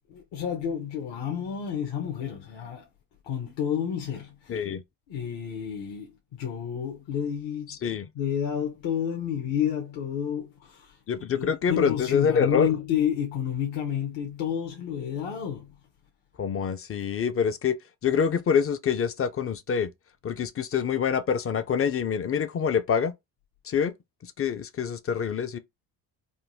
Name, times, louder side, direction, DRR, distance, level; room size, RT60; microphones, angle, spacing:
voice 1, 0.1-2.9 3.2-4.6 5.1-7.8 8.1-11.0 11.3-15.7, left 9 dB, 60° left, 0.9 m, -30 dB
voice 2, 4.5-4.8 7.7-8.1 11.1-12.7 16.4-17.8 18.0-19.9 20.2-23.1 23.7-23.9 24.4-25.6, left 7 dB, 30° left, 0.4 m, -26 dB
3.7 x 2.2 x 2.6 m
supercardioid pair, 65°, 49 cm